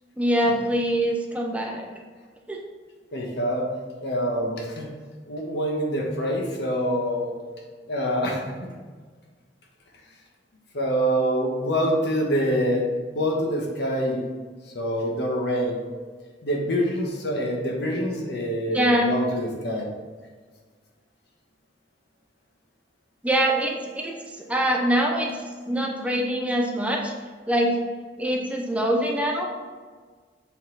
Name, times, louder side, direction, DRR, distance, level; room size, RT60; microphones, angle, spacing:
voice 1, 0.2-1.9 2.5-2.6 18.7-19.2 23.2-24.1 24.5-25.4 25.7-27.1 27.5-27.8 28.2-29.5, right 1 dB, 10° right, 0 dB, 0.7 m, -24 dB
voice 2, 3.1-3.7 4.0-4.9 5.3-7.3 7.9-8.4 10.7-12.9 13.1-14.3 14.7-15.8 16.4-19.9, equal, 70° left, 0 dB, 1.3 m, -25 dB
7.2 x 4.2 x 4.0 m, 1.5 s
head